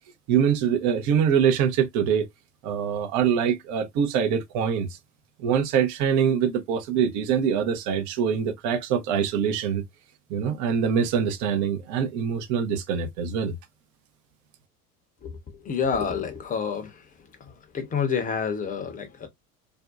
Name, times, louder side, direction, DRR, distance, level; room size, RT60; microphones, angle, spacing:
voice 1, 0.3-2.3 2.6-4.9 5.4-9.8 10.3-13.5, right 7 dB, 40° right, 0.7 m, -24 dB
voice 2, 15.2-17.1 17.4-19.3, left 6 dB, 15° left, 0.7 m, -29 dB
2.6 x 2.1 x 2.3 m
figure-of-eight pair, 80°, 47 cm